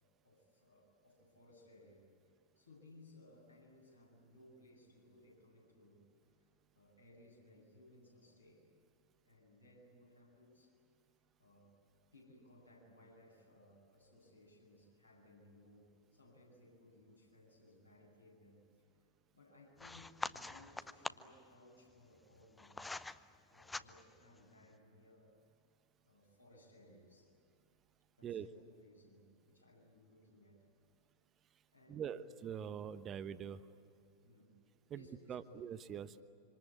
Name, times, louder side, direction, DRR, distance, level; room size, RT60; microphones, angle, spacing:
voice 1, 0.2-2.1 2.6-6.0 6.7-8.7 9.2-10.7 11.4-11.8 12.1-18.6 19.3-22.9 23.5-25.3 26.0-27.3 28.2-30.6 31.7-32.3 34.2-34.6 34.9-35.6, left 1 dB, 85° left, -2 dB, 8.0 m, -63 dB
sound 1, 19.8-21.4 22.2-23.2 23.5-24.2, left 3 dB, 10° left, 0.7 m, -45 dB
voice 2, 31.9-33.6 34.9-36.2, right 8 dB, 30° right, 12 dB, 1.1 m, -44 dB
26.5 x 26.0 x 8.6 m, 2.6 s
figure-of-eight pair, 90°, 0 cm